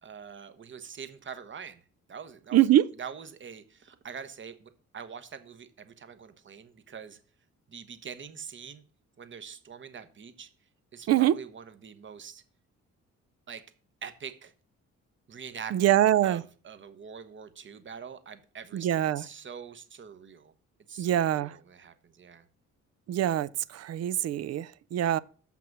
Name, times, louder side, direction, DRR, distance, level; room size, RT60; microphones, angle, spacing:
voice 1, 0.0-2.7 3.0-7.2 7.7-8.8 9.2-10.5 10.9-12.4 13.5-13.7 14.0-14.5 15.3-20.5 20.9-22.5, right 7 dB, 40° right, 1.1 m, -44 dB
voice 2, 2.5-2.8 11.1-11.3 15.7-16.4 18.7-19.2 21.0-21.6 23.1-25.2, right 12 dB, 55° right, 0.5 m, -24 dB
7.1 x 5.9 x 6.0 m
cardioid pair, 90°, 30 cm